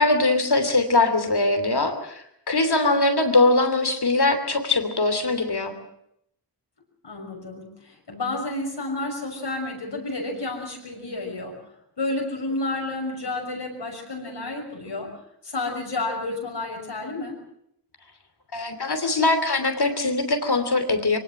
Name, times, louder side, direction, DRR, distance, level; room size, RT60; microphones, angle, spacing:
voice 1, 0.0-5.7 18.5-21.2, left 2 dB, 70° left, 8 dB, 3.0 m, -22 dB
voice 2, 7.0-11.5 12.0-15.1 15.4-17.3, left 2 dB, 90° left, 0 dB, 6.2 m, -30 dB
23.5 x 18.5 x 7.7 m, 0.74 s
wide cardioid pair, 65°, 41 cm